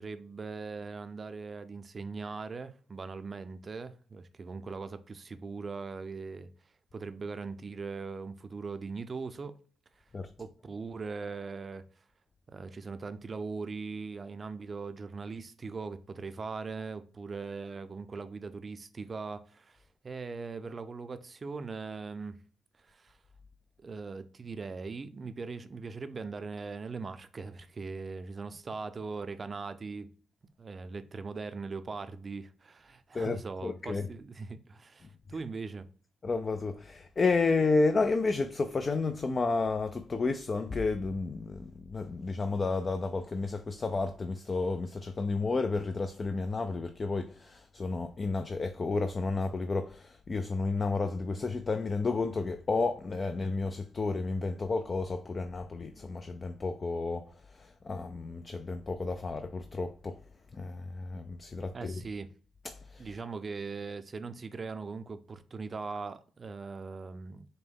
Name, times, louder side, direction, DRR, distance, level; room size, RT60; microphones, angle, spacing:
voice 1, 0.0-6.5 6.9-9.5 10.4-11.8 12.5-22.4 22.8-23.2 23.8-30.1 30.6-35.9 61.7-62.3 63.0-67.5, right 4 dB, 40° right, 0.5 m, -40 dB
voice 2, 33.1-34.1 36.2-60.2 60.5-62.0 62.9-63.1, left 3 dB, 40° left, 0.4 m, -31 dB
5.3 x 2.1 x 3.6 m
supercardioid pair, 55°, 0 cm